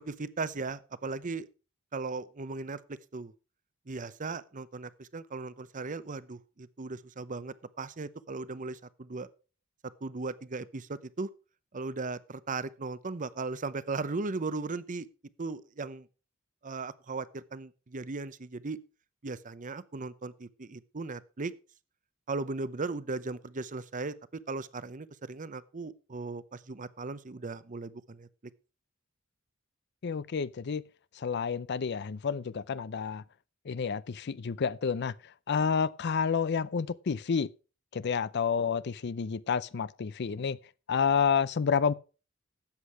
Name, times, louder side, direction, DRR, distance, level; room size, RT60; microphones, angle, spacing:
voice 1, 0.0-1.5 1.9-3.3 3.9-9.3 10.0-11.3 11.7-15.1 15.4-16.1 16.6-18.8 19.2-21.5 22.3-24.1 24.5-28.3, right 3 dB, 40° right, 0.7 m, -37 dB
voice 2, 30.0-30.8 31.2-33.2 33.7-35.1 35.5-37.5 37.9-40.6 40.9-41.9, left 6 dB, 55° left, 0.5 m, -29 dB
13.0 x 8.4 x 4.7 m
head